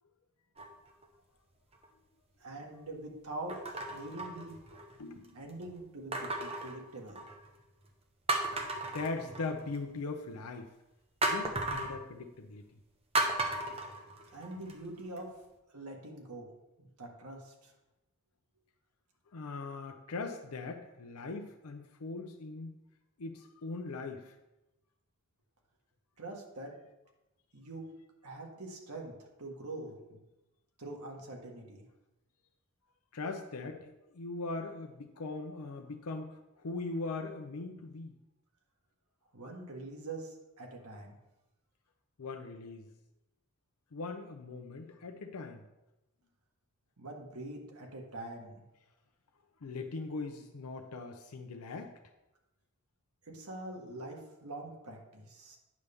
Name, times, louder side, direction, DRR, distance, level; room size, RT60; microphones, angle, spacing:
sound 1, 0.6-1.1 1.7-1.9 3.5-5.0 6.1-7.5 7.9-8.0 8.3-9.8 11.2-12.0 13.1-14.7 15.2-15.3, right 2 dB, 25° right, 0.9 m, -35 dB
voice 1, 2.4-4.6 5.3-7.3 13.7-13.8 14.3-15.3 15.7-16.5 16.8-17.7 26.2-26.7 27.5-27.9 28.2-29.1 29.4-30.2 30.8-31.9 39.3-41.2 47.0-48.6 53.2-55.6, right 2 dB, 90° right, 1 dB, 1.6 m, -44 dB
voice 2, 5.0-5.4 8.8-10.7 11.2-12.8 19.3-22.8 23.2-24.4 33.1-38.1 42.2-42.9 43.9-45.6 49.6-51.9, left 3 dB, 90° left, 4 dB, 0.6 m, -40 dB
9.4 x 3.5 x 6.8 m, 0.96 s
head